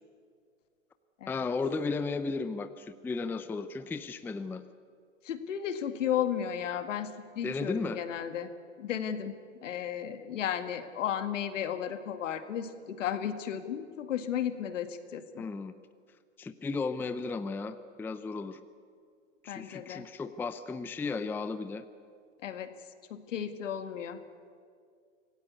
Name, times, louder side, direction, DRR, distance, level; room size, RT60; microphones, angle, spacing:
voice 1, 1.3-4.6 7.4-8.0 15.4-15.7 16.4-18.6 19.4-21.8, left 4 dB, 5° left, 11 dB, 0.5 m, -34 dB
voice 2, 5.2-8.5 8.8-9.3 9.6-15.4 19.5-20.1 22.4-22.7 23.1-24.2, left 9 dB, 70° left, 10 dB, 2.0 m, -34 dB
26.0 x 17.5 x 8.4 m, 2.2 s
hypercardioid pair, 110°, 39 cm